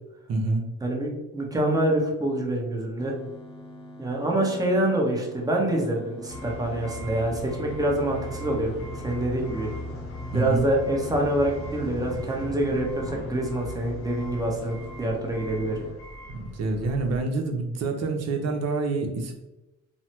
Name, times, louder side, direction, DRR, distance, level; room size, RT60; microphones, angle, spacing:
voice 1, 0.3-0.7 10.3-10.7 16.3-19.3, right 3 dB, 60° right, 3 dB, 0.6 m, -27 dB
voice 2, 0.8-3.2 4.0-8.7 9.0-9.7 10.3-15.8, right 1 dB, 10° right, -1 dB, 0.7 m, -26 dB
sound 1, 3.0-15.9, left 1 dB, 20° left, 0.5 m, -45 dB
sound 2, 6.3-17.2, equal, 45° left, 0.8 m, -38 dB
3.1 x 2.0 x 2.8 m, 0.97 s
cardioid pair, 90°, 30 cm